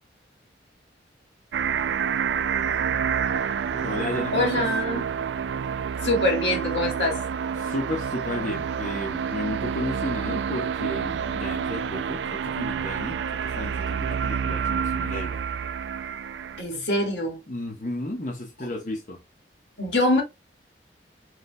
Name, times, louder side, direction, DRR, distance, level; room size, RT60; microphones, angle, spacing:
sound 1, 1.5-16.6, right 7 dB, 85° right, 0.3 m, -28 dB
voice 1, 3.8-4.6 7.6-15.4 17.5-19.2, left 1 dB, 45° left, 1.1 m, -33 dB
voice 2, 4.3-5.1 6.0-7.2 16.6-17.4 18.6-18.7 19.8-20.2, left 1 dB, 80° left, 2.1 m, -24 dB
4.8 x 4.3 x 2.2 m
head